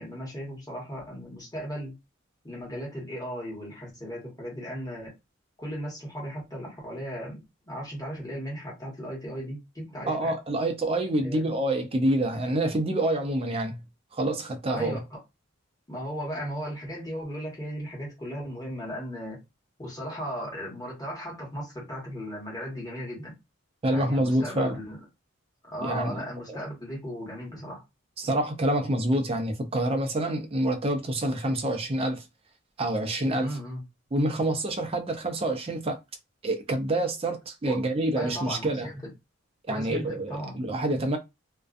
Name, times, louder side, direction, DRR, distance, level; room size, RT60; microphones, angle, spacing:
voice 1, 0.0-2.0 2.4-5.1 5.6-10.3 11.1-11.5 14.7-15.2 15.9-19.4 19.8-23.4 23.9-25.0 25.7-27.8 33.4-33.8 37.6-37.8 38.2-39.1 39.7-41.1, equal, 20° left, 1.2 m, -36 dB
voice 2, 10.1-13.8 14.1-15.0 23.8-24.8 25.8-26.6 28.2-32.2 32.8-33.6 34.1-36.0 36.4-38.9 39.7-41.2, right 1 dB, 30° right, 0.5 m, -27 dB
2.4 x 2.1 x 2.4 m
head